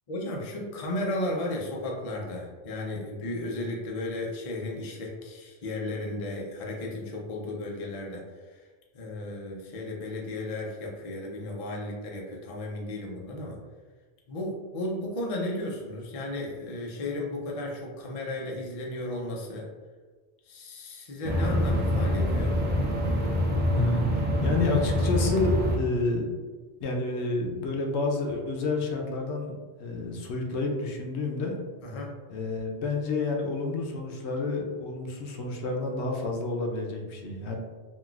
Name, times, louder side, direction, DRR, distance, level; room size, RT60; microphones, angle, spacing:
voice 1, 0.1-8.2 8.9-13.6 14.3-19.7 20.5-22.6 31.8-32.2, left 1 dB, 45° left, -1 dB, 0.5 m, -34 dB
sound 1, 21.2-25.8, equal, 15° right, 0.3 m, -25 dB
voice 2, 23.7-26.3 26.8-31.6 32.3-37.6, left 3 dB, 85° left, 1 dB, 0.9 m, -29 dB
3.8 x 2.3 x 2.3 m, 1.4 s
omnidirectional pair, 1.1 m